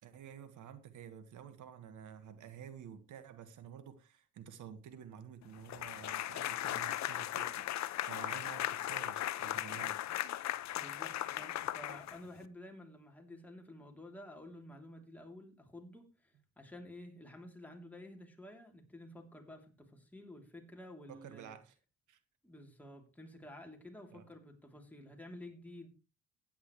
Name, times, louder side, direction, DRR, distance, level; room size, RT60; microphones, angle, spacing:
voice 1, 0.0-10.0 21.1-21.8 22.1-22.2 24.1-24.2, right 8 dB, 80° right, 1.8 m, -51 dB
sound 1, 5.7-12.5, left 13 dB, 65° left, 0.7 m, -37 dB
voice 2, 10.7-21.6 22.4-25.9, left 1 dB, 5° left, 3.3 m, -52 dB
15.5 x 9.4 x 3.2 m
cardioid pair, 90°, 30 cm